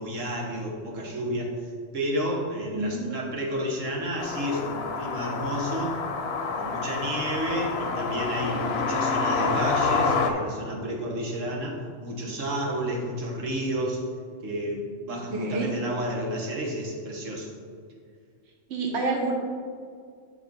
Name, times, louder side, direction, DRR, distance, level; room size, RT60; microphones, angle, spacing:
voice 1, 0.0-6.0 6.5-14.0 14.4-17.5, equal, 85° right, -2 dB, 1.6 m, -31 dB
voice 2, 2.7-3.1 15.1-15.7 18.7-19.3, right 3 dB, 60° right, -1 dB, 1.3 m, -29 dB
sound 1, 4.2-10.3, left 4 dB, 60° left, 0.9 m, -28 dB
9.8 x 3.3 x 5.3 m, 2.1 s
omnidirectional pair, 1.3 m